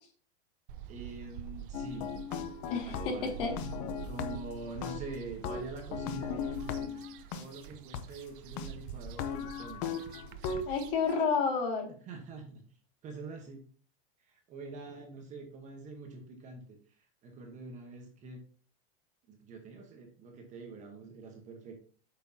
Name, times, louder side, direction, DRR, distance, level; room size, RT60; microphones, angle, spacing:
sound 1, 0.7-11.2, right 9 dB, 50° right, 0.6 m, -46 dB
voice 1, 0.9-2.2 2.9-3.4 4.0-7.1 7.3-10.0 12.1-12.6 13.0-13.6 14.3-18.4 19.3-21.7, right 3 dB, 20° right, 3 dB, 1.1 m, -45 dB
sound 2, 1.7-4.5 4.8-7.4 7.9-8.0 8.6-8.7 9.1-10.7, left 6 dB, 30° left, 0.6 m, -37 dB
voice 2, 2.7-3.6 10.7-11.9, left 5 dB, 55° left, 3 dB, 2.2 m, -30 dB
8.0 x 6.0 x 2.8 m, 0.43 s
supercardioid pair, 165°, 33 cm